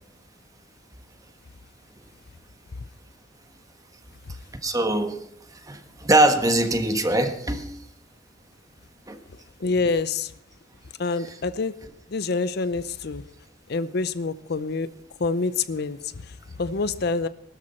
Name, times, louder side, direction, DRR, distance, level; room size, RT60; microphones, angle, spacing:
voice 1, 4.6-5.2 5.5-7.8 9.1-9.2, right 1 dB, 20° right, 7 dB, 1.4 m, -22 dB
voice 2, 9.6-10.3 11.0-11.7 12.1-13.2 13.7-14.9 15.2-17.3, left 4 dB, 60° left, 14 dB, 0.6 m, -26 dB
19.5 x 12.5 x 4.4 m, 0.69 s
head